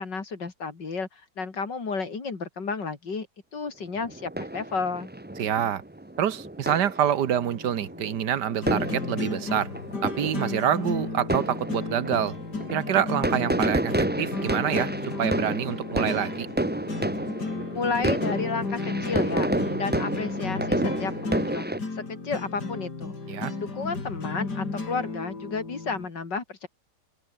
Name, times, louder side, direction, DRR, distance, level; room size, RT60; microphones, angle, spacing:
voice 1, 0.0-3.3 3.5-5.1 17.7-23.2 23.6-26.7, left 4 dB, 80° left, 3.8 m, -32 dB
sound 1, 4.0-21.8, right 1 dB, 10° right, 0.7 m, -30 dB
voice 2, 5.4-5.8 6.2-9.7 10.0-12.4 12.7-13.9 14.2-14.9 15.2-16.5 23.3-23.5, right 9 dB, 70° right, 1.7 m, -26 dB
sound 2, 7.3-26.1, left 3 dB, 65° left, 4.7 m, -34 dB
omnidirectional pair, 1.9 m